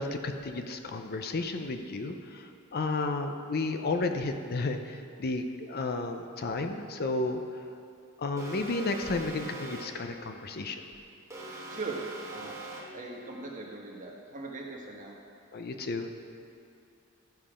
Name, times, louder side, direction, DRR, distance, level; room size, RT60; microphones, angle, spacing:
voice 1, 0.0-7.4 8.2-10.8 15.5-16.1, left 3 dB, 45° left, 6 dB, 0.6 m, -32 dB
Alarm, 8.4-10.1 11.3-13.1, right 2 dB, 15° right, 1.3 m, -42 dB
voice 2, 11.7-12.0 12.3-12.6 12.9-15.2, right 3 dB, 35° right, -1 dB, 1.4 m, -40 dB
14.5 x 5.6 x 5.0 m, 2.5 s
head